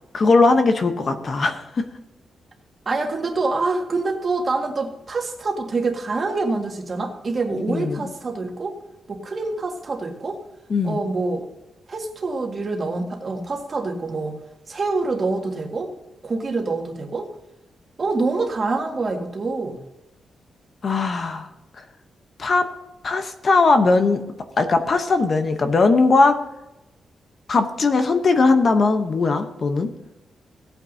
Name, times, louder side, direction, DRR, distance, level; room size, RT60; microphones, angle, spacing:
voice 1, 0.1-1.8 7.5-8.0 10.7-11.0 20.8-21.5 21.8-21.9 22.4-22.7 23.0-24.2 24.6-26.4 27.5-29.9, left 3 dB, 40° left, 7 dB, 0.9 m, -19 dB
voice 2, 2.9-8.8 9.1-10.4 10.8-11.5 11.9-14.4 14.7-15.9 16.2-17.3 18.0-19.8, right 3 dB, 35° right, 2 dB, 1.8 m, -26 dB
17.0 x 9.0 x 2.8 m, 0.93 s
wide cardioid pair, 165°, 0 cm